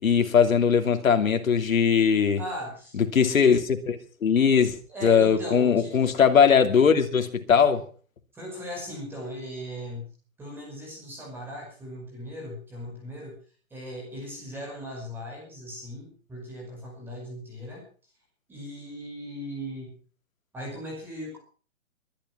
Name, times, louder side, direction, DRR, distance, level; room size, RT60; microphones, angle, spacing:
voice 1, 0.0-2.4 3.0-4.8 5.0-7.8, left 6 dB, 75° left, 7 dB, 2.9 m, -20 dB
voice 2, 2.4-3.0 4.9-6.0 8.3-10.1 10.4-13.4 13.7-17.8 18.5-20.0 20.5-21.4, equal, 5° right, -1 dB, 5.5 m, -38 dB
23.0 x 10.5 x 5.6 m, 0.42 s
hypercardioid pair, 175°, 41 cm